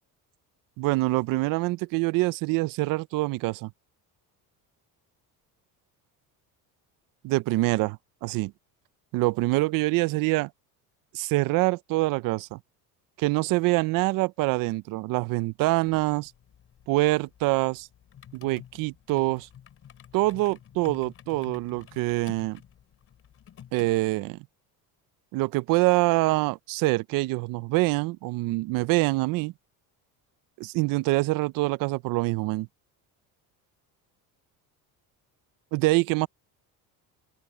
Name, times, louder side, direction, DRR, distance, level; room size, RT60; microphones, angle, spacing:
voice 1, 0.8-3.7 7.2-8.5 9.1-10.5 11.1-12.6 13.2-16.3 16.9-17.9 18.3-19.5 20.1-22.6 23.7-24.4 25.3-29.5 30.6-32.7 35.7-36.3, right 21 dB, 60° right, 0.5 m, -25 dB
sound 1, 15.8-23.9, left 9 dB, 35° left, 3.3 m, -50 dB
open air
cardioid pair, 170°, 38 cm